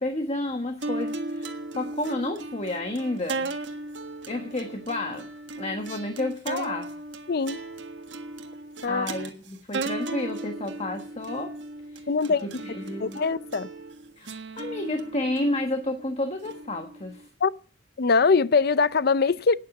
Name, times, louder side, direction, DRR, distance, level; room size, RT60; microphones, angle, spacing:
voice 1, 0.0-3.5 4.3-5.3 5.6-6.9 8.9-11.5 11.9-12.1 12.4-13.2 14.2-17.3, left 2 dB, 35° left, 1.3 m, -31 dB
sound 1, 0.8-17.3, right 2 dB, 80° right, 1.6 m, -36 dB
voice 2, 7.3-7.6 8.8-9.1 12.1-12.5 13.0-13.7 17.4-17.5 18.0-19.5, left 4 dB, 60° left, 0.6 m, -22 dB
12.0 x 9.5 x 7.8 m
head